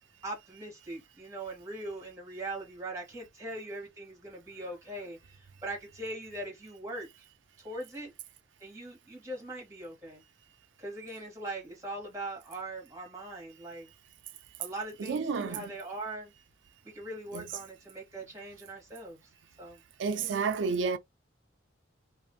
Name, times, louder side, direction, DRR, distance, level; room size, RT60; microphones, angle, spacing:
voice 1, 0.2-7.1 7.6-8.1 8.6-10.2 10.8-13.9 14.6-16.3 16.8-19.2 19.6-19.8 20.2-20.5, right 2 dB, 15° right, 1.2 m, -41 dB
voice 2, 15.0-15.8 17.3-17.6 20.0-21.0, right 5 dB, 75° right, 0.4 m, -31 dB
2.5 x 2.4 x 2.6 m
head